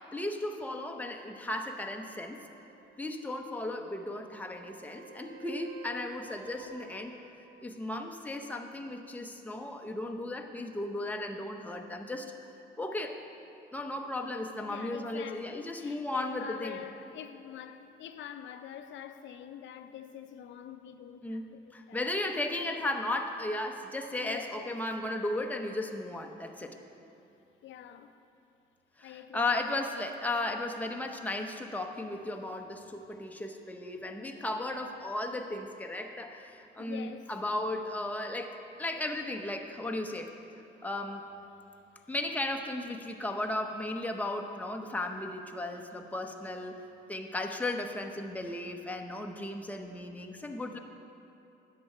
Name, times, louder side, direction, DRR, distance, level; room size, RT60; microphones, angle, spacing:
voice 1, 0.1-2.4 3.0-7.1 7.6-13.2 13.7-16.8 21.2-26.8 29.0-40.3 40.8-41.3 42.1-46.8 47.1-50.8, left 2 dB, 10° left, 3 dB, 0.8 m, -35 dB
sound 1, 2.3-8.0 12.1-12.2, right 4 dB, 75° right, 0.8 m, -53 dB
voice 2, 14.6-22.1 22.6-22.8 24.2-24.8 27.6-28.1 29.0-29.8 36.8-37.3, left 9 dB, 70° left, 9 dB, 0.6 m, -46 dB
10.5 x 7.5 x 4.4 m, 2.8 s
cardioid pair, 90°, 20 cm